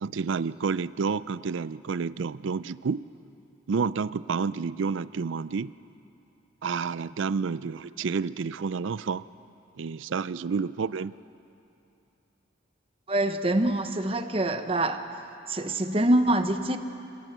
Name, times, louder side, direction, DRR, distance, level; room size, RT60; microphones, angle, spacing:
voice 1, 0.0-3.0 3.7-5.7 6.6-9.2 9.8-11.1, right 5 dB, 75° right, 17 dB, 0.4 m, -29 dB
voice 2, 13.1-15.0 15.5-16.8, right 1 dB, 30° right, 8 dB, 0.9 m, -25 dB
26.0 x 17.5 x 8.0 m, 2.8 s
head